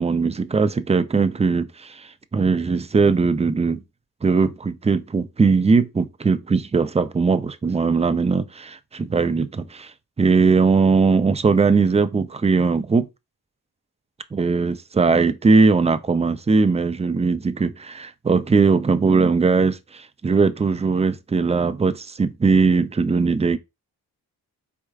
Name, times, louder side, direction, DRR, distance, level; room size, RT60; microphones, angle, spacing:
voice 1, 0.0-3.8 4.2-9.9 10.2-13.1 14.3-23.6, right 4 dB, 20° right, 0.4 m, -20 dB
4.8 x 4.3 x 2.3 m
wide cardioid pair, 105°, 38 cm